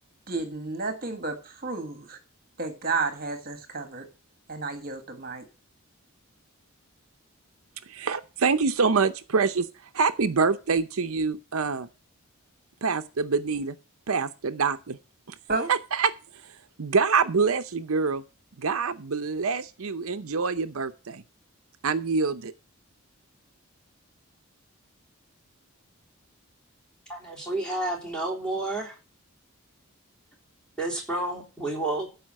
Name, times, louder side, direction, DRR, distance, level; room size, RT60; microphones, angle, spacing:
voice 1, 0.3-2.2 2.6-4.0 4.5-5.5 15.5-15.7, right 3 dB, 40° right, 1.5 m, -31 dB
voice 2, 7.9-9.7 9.9-11.9 12.8-13.8 14.1-15.0 15.7-16.1 16.4-16.5 16.8-18.2 18.6-21.2 21.8-22.5, right 5 dB, 75° right, 0.7 m, -25 dB
voice 3, 27.1-29.0 30.8-32.1, right 2 dB, 5° left, 3.4 m, -30 dB
12.5 x 5.0 x 7.3 m
head